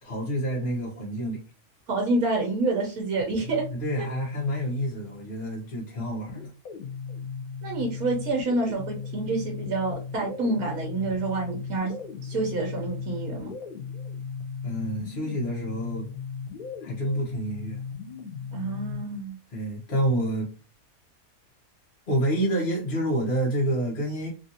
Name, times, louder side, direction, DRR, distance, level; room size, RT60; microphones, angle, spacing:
voice 1, 0.0-1.4 3.7-6.5 14.6-16.1 16.8-17.8 19.5-20.5 22.1-24.3, right 1 dB, 40° left, 1.1 m, -28 dB
voice 2, 1.9-3.6 4.0-4.1 7.6-11.9 12.2-13.5 18.5-19.3, right 3 dB, 75° right, 1.3 m, -28 dB
sound 1, 3.2-5.3 6.3-19.2, left 6 dB, 80° left, 1.2 m, -37 dB
3.2 x 2.5 x 2.6 m
omnidirectional pair, 1.5 m